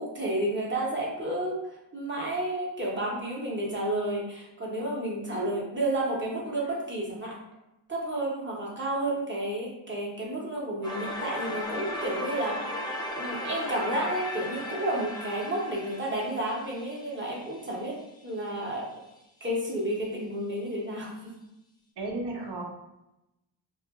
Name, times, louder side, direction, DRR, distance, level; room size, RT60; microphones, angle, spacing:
voice 1, 0.0-1.6 1.9-7.3 7.9-12.7 13.2-17.9 18.2-18.8 19.4-21.4, right 1 dB, 25° right, -4 dB, 0.8 m, -31 dB
voice 2, 5.3-5.7 22.0-22.6, right 2 dB, 60° right, 0 dB, 0.7 m, -34 dB
sound 1, 10.8-17.7, left 1 dB, 10° left, 0.4 m, -36 dB
2.8 x 2.4 x 2.3 m, 0.90 s
wide cardioid pair, 95°, 47 cm